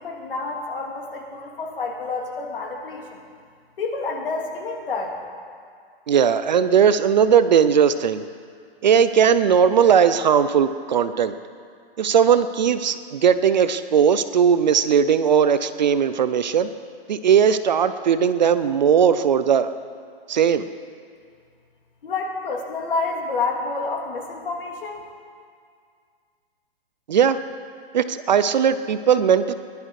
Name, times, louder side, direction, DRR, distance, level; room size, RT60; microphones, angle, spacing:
voice 1, 0.0-3.2 3.8-5.2 22.0-25.1, left 3 dB, 60° left, 1 dB, 2.6 m, -29 dB
voice 2, 6.1-8.3 8.8-11.3 12.0-16.7 17.1-19.7 20.3-20.6 27.1-27.4 27.9-29.5, right 7 dB, 45° right, 12 dB, 0.5 m, -18 dB
19.0 x 11.5 x 4.8 m, 2.1 s
hypercardioid pair, 165°, 31 cm